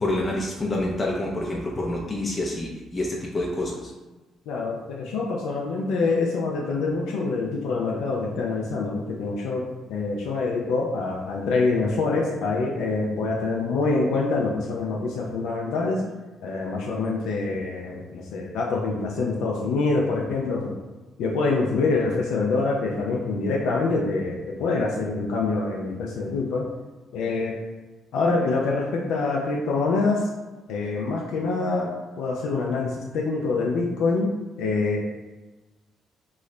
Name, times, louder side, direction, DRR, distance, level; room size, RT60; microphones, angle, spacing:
voice 1, 0.0-3.9, left 1 dB, 25° left, -3 dB, 0.5 m, -27 dB
voice 2, 4.5-16.0 16.4-20.7 21.2-26.6 27.1-27.5 28.1-30.3 30.7-31.9 32.2-34.3 34.6-35.0, left 3 dB, 75° left, -2 dB, 0.4 m, -25 dB
3.1 x 2.1 x 3.7 m, 1.2 s
supercardioid pair, 70°, 0 cm